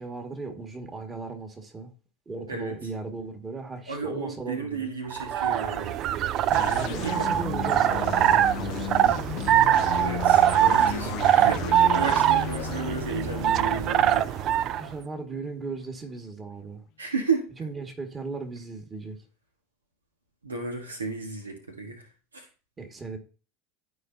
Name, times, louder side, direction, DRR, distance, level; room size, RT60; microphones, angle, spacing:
voice 1, 0.0-1.9 2.3-4.9 6.5-9.3 14.4-14.5 14.8-16.8 17.6-19.2 22.8-23.2, right 4 dB, 25° right, 4 dB, 2.0 m, -37 dB
voice 2, 3.9-6.0 6.9-7.3 9.9-14.3 17.0-17.5 20.4-22.5, right 4 dB, 90° right, 4 dB, 1.5 m, -33 dB
sound 1, 5.1-14.9, right 11 dB, 45° right, 0.4 m, -23 dB
sound 2, 6.5-16.0, left 19 dB, 55° left, 0.3 m, -35 dB
13.0 x 4.8 x 2.8 m, 0.35 s
hypercardioid pair, 80°, 0 cm